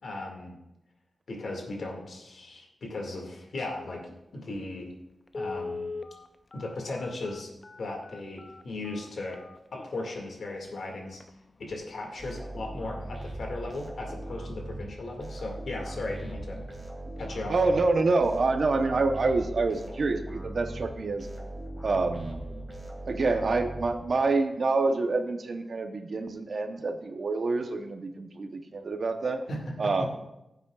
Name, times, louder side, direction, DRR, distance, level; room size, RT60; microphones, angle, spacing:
voice 1, 0.0-0.6 1.3-4.9 5.3-5.9 6.5-7.5 7.8-9.4 9.7-11.2 11.6-16.6 17.2-17.7 29.5-29.6 30.0-30.1, left 2 dB, 75° left, 0 dB, 2.0 m, -37 dB
Telephone, 4.5-4.6 5.3-10.1 10.7-10.8 11.1-11.3 11.7-12.0 12.3-12.4, left 3 dB, 40° left, 0.4 m, -40 dB
sound 1, 12.2-24.4, right 1 dB, 15° right, 2.4 m, -40 dB
voice 2, 17.5-21.3 21.8-22.4 23.0-29.4 29.8-30.1, right 3 dB, 65° right, 6 dB, 0.9 m, -27 dB
15.5 x 8.0 x 2.4 m, 0.92 s
wide cardioid pair, 80°, 0 cm